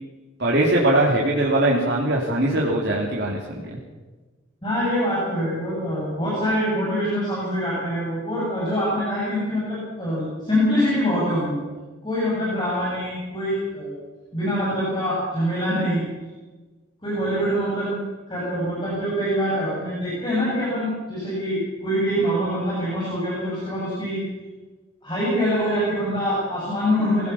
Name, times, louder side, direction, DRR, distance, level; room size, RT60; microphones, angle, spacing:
voice 1, 0.4-3.8, right 1 dB, 55° right, -4 dB, 3.2 m, -21 dB
voice 2, 4.6-11.6 12.0-13.9 14.3-16.0 17.0-18.0 18.3-24.2 25.0-27.3, equal, 25° left, -7 dB, 7.7 m, -24 dB
23.0 x 16.5 x 7.1 m, 1.3 s
head